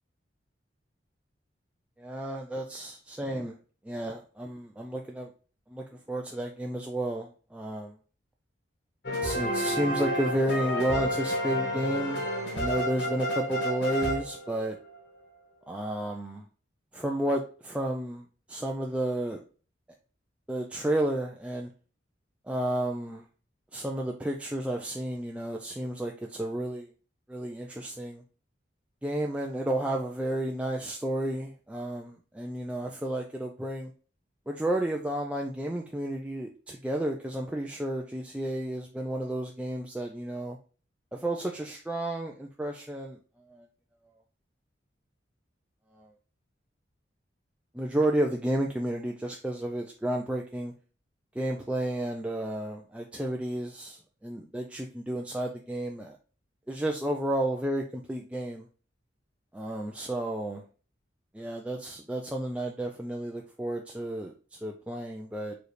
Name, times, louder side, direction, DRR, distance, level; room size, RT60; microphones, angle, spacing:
voice 1, 2.0-3.6 3.8-5.3 5.7-8.0 9.2-12.2 12.5-14.8 15.7-16.4 16.9-19.4 20.5-21.7 22.5-23.2 23.7-26.9 27.3-28.2 29.0-33.9 34.5-40.6 41.1-43.2 43.5-43.7 45.9-46.1 47.7-50.7 51.4-56.2 56.7-58.7 59.5-60.6 61.3-65.5, right 1 dB, 5° right, 0 dB, 0.3 m, -32 dB
sound 1, 9.0-15.0, equal, 60° left, 1.3 m, -30 dB
4.7 x 3.2 x 3.1 m, 0.38 s
head